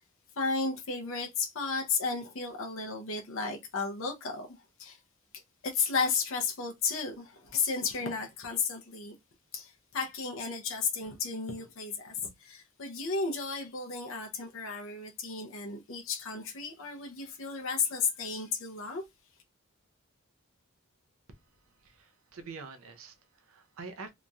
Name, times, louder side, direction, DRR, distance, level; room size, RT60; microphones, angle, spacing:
voice 1, 0.4-5.0 5.3-9.1 9.5-19.0, left 4 dB, 65° left, 0.6 m, -33 dB
voice 2, 21.6-24.1, right 4 dB, 75° right, 0.6 m, -46 dB
2.9 x 2.6 x 2.2 m
head